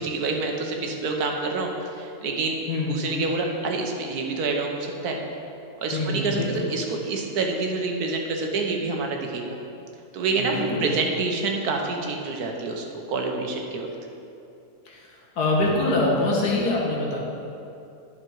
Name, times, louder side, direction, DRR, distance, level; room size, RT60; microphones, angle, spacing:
voice 1, 0.0-2.6 2.9-5.2 5.8-9.6 10.1-13.9, right 3 dB, 75° right, 2 dB, 1.5 m, -27 dB
voice 2, 2.7-3.0 5.9-6.7 10.4-10.9 14.9-17.2, left 2 dB, 80° left, -3 dB, 2.0 m, -25 dB
10.5 x 6.1 x 4.6 m, 2.7 s
omnidirectional pair, 1.6 m